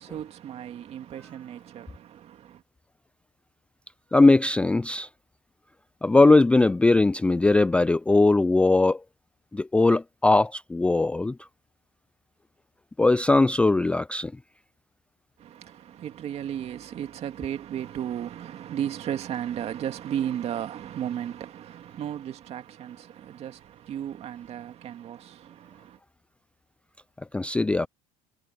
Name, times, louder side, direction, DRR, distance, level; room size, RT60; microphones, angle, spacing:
voice 1, 0.0-2.6 15.4-26.0, right 10 dB, 45° right, 2.2 m, -35 dB
voice 2, 4.1-5.1 6.0-9.0 9.5-11.4 13.0-14.3 27.3-27.9, left 2 dB, 10° left, 0.4 m, -20 dB
supercardioid pair, 115°, 15 cm